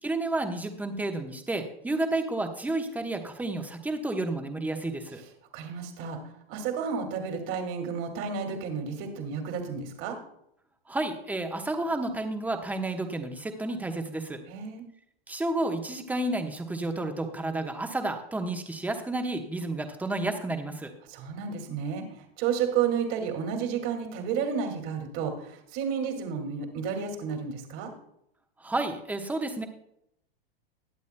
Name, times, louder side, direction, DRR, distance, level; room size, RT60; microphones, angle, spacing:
voice 1, 0.0-5.2 10.9-14.4 15.3-20.9 28.6-29.7, right 2 dB, 5° right, 5 dB, 1.1 m, -31 dB
voice 2, 5.5-10.2 14.5-14.8 21.0-27.9, right 7 dB, 45° right, 5 dB, 2.3 m, -31 dB
21.0 x 8.1 x 2.2 m, 0.74 s
hypercardioid pair, 125°, 30 cm